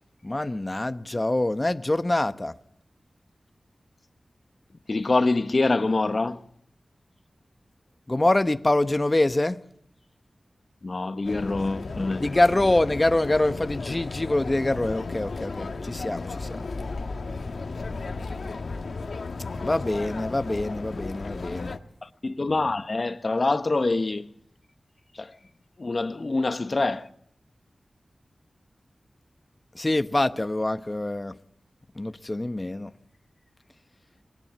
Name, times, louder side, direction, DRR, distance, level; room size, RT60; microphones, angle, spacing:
voice 1, 0.2-2.5 8.1-9.6 12.2-16.7 19.6-21.7 29.7-31.3 32.0-32.9, left 2 dB, 30° left, 0.9 m, -25 dB
voice 2, 4.9-6.4 10.8-12.3 22.0-24.3 25.2-25.3 25.8-27.1, left 3 dB, 50° left, 1.1 m, -25 dB
sound 1, 11.2-21.8, left 3 dB, 80° left, 1.5 m, -34 dB
22.5 x 18.5 x 8.3 m
wide cardioid pair, 60°, 0 cm